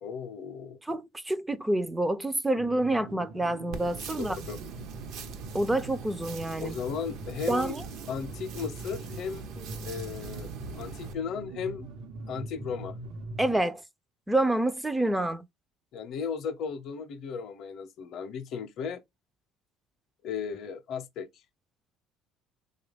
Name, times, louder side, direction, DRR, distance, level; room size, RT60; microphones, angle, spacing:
voice 1, 0.0-0.8 4.1-4.6 6.6-7.8 8.1-9.5 9.8-10.5 10.7-11.9 12.3-13.0 15.9-19.0 20.2-21.3, left 6 dB, 60° left, 0.6 m, -35 dB
voice 2, 0.8-4.4 5.5-6.8 7.5-7.8 13.4-13.8 14.3-15.4, right 1 dB, 10° right, 0.3 m, -27 dB
sound 1, 2.6-13.6, right 2 dB, 90° right, 0.9 m, -43 dB
sound 2, 3.7-11.1, right 5 dB, 65° right, 0.6 m, -42 dB
3.2 x 2.3 x 3.3 m
cardioid pair, 125°, 0 cm